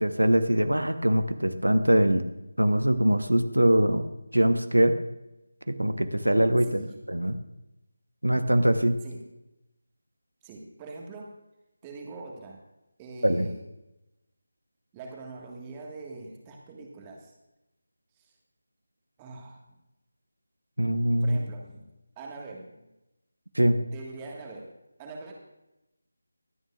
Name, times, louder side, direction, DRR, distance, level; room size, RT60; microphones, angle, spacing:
voice 1, 0.0-2.2 2.6-4.1 4.3-5.0 5.7-6.8 7.1-7.4 8.2-9.0 13.2-13.5 20.8-21.4 23.5-23.8, right 1 dB, 85° right, 10 dB, 1.0 m, -22 dB
voice 2, 10.4-11.3 11.8-12.6 13.0-13.6 14.9-17.3 18.2-18.3 19.2-19.6 21.2-21.9 22.2-22.8 23.9-24.7 25.0-25.3, right 3 dB, 15° right, 0 dB, 1.6 m, -43 dB
23.5 x 9.0 x 2.4 m, 0.93 s
figure-of-eight pair, 160°, 0 cm